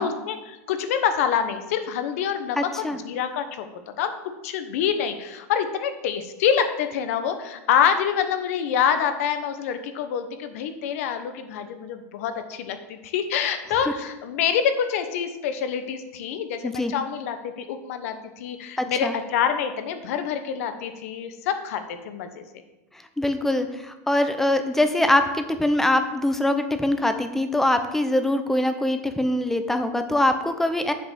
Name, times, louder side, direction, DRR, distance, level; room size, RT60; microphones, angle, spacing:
voice 1, 0.0-3.7 4.0-4.1 4.4-22.4, left 8 dB, 70° left, 9 dB, 1.0 m, -26 dB
voice 2, 2.6-3.0 16.6-16.9 18.8-19.2 23.2-30.9, left 1 dB, 5° left, 8 dB, 0.6 m, -23 dB
7.3 x 5.1 x 6.9 m, 1.0 s
supercardioid pair, 145°, 8 cm